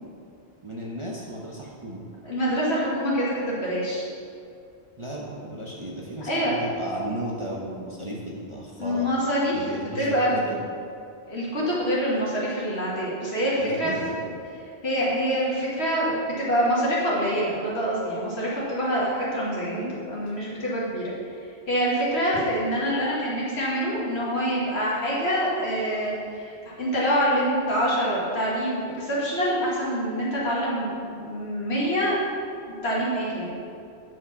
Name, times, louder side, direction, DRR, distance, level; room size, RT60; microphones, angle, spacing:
voice 1, 0.6-2.0 5.0-9.1 9.5-10.6 13.6-14.1 19.7-20.0, right 1 dB, 30° right, -4 dB, 1.0 m, -35 dB
voice 2, 2.2-4.0 6.3-6.5 8.8-10.5 11.3-13.9 14.8-19.8 20.1-21.1 21.7-32.2 32.7-33.5, equal, 70° left, -7 dB, 2.1 m, -25 dB
9.3 x 5.7 x 5.8 m, 2.5 s
omnidirectional pair, 1.1 m